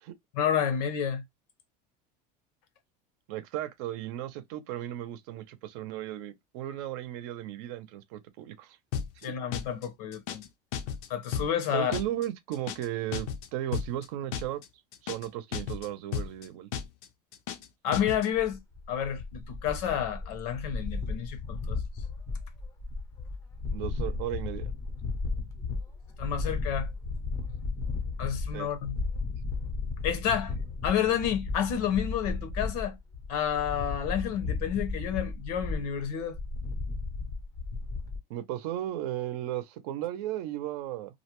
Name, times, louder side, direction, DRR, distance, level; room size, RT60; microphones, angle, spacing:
voice 1, 0.3-1.2 9.2-10.5 11.1-11.9 17.8-18.6 18.9-21.8 26.2-26.9 28.2-29.0 30.0-30.5 30.8-33.0 33.3-36.4, left 9 dB, 80° left, 0.9 m, -30 dB
voice 2, 3.3-8.8 9.2-9.3 11.7-14.6 15.0-16.7 23.7-24.7 28.5-28.7 38.3-41.2, right 13 dB, 65° right, 0.6 m, -35 dB
sound 1, 8.9-9.3 9.5-9.9 10.1-10.5 10.7-11.1 11.3-11.7 11.9-12.3 12.5-12.9 13.1-13.5 13.7-14.1 14.3-14.7 14.9-15.3 15.5-15.9 16.1-16.5 16.7-17.1 17.3-17.7 17.9-18.3, left 8 dB, 60° left, 0.5 m, -34 dB
sound 2, 18.3-38.2, left 3 dB, 15° left, 0.5 m, -35 dB
2.6 x 2.1 x 2.9 m
cardioid pair, 170°, 20 cm